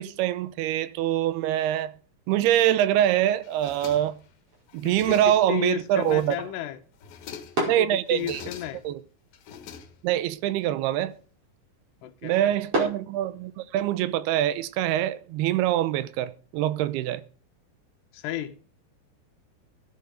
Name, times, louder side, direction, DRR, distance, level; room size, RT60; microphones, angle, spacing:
voice 1, 0.0-1.9 2.3-4.2 4.7-6.4 7.7-8.4 8.8-9.0 10.0-11.1 12.2-17.2, right 12 dB, 80° right, 2.7 m, -24 dB
sound 1, 3.4-4.3 4.7-5.6 5.9-6.6 6.9-7.7 8.1-9.0 9.3-10.3, left 8 dB, 70° left, 3.0 m, -45 dB
sound 2, 3.8-13.8, right 1 dB, 35° right, 5.9 m, -38 dB
voice 2, 4.8-6.8 7.6-8.8 12.0-12.6 18.1-18.6, left 12 dB, 85° left, 3.1 m, -33 dB
14.0 x 10.0 x 5.1 m
omnidirectional pair, 4.7 m